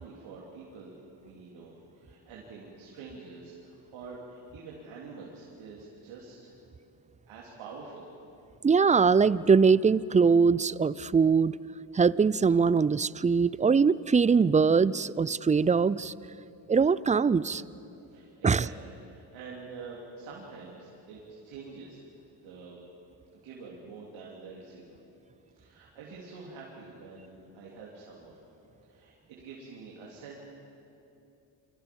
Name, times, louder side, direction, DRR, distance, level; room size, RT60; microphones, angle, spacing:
voice 1, 0.0-6.5 7.3-8.1 18.1-22.0 22.4-22.8 23.4-25.0 25.6-28.4 28.9-30.4, right 4 dB, 70° right, -4 dB, 3.4 m, -46 dB
voice 2, 8.6-11.6 11.9-16.1 16.7-17.6 18.4-18.7, right 5 dB, 15° right, 20 dB, 0.5 m, -22 dB
28.0 x 24.0 x 5.4 m, 2.9 s
hypercardioid pair, 55°, 48 cm